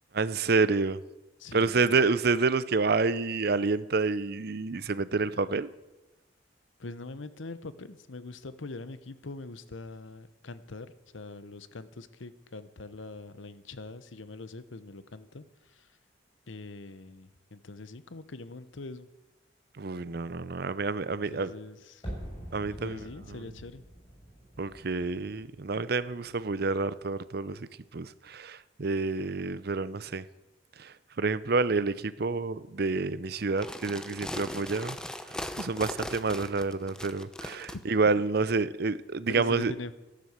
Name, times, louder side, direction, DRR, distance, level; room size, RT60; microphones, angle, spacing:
voice 1, 0.1-1.0 1.5-5.7 19.8-21.5 22.5-23.0 24.6-27.7 27.9-30.3 30.8-35.0 35.6-39.7, right 4 dB, 55° right, 0.6 m, -28 dB
voice 2, 1.4-2.1 6.8-15.9 16.5-19.1 21.1-22.1 22.7-23.8 39.3-39.9, left 3 dB, 85° left, 0.9 m, -43 dB
sound 1, 22.0-27.0 27.2-27.3, equal, 25° left, 7.1 m, -45 dB
sound 2, 33.5-37.8, left 1 dB, 5° left, 0.8 m, -39 dB
13.5 x 11.5 x 8.0 m
head